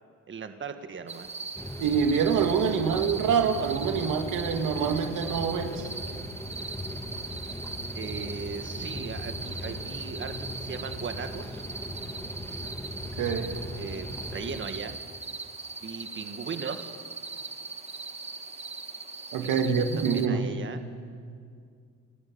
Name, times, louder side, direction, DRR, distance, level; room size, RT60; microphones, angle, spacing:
voice 1, 0.3-1.3 7.9-10.3 10.6-11.6 13.8-15.0 15.8-16.9 19.4-20.8, right 5 dB, 40° right, 7 dB, 1.6 m, -38 dB
sound 1, 1.1-20.3, right 3 dB, 20° right, 1.3 m, -40 dB
sound 2, 1.5-14.6, left 1 dB, 10° left, 2.1 m, -39 dB
voice 2, 1.8-5.9 13.2-13.6 19.3-20.5, right 6 dB, 90° right, 5 dB, 2.0 m, -26 dB
29.5 x 14.0 x 8.7 m, 2.2 s
cardioid pair, 90°, 30 cm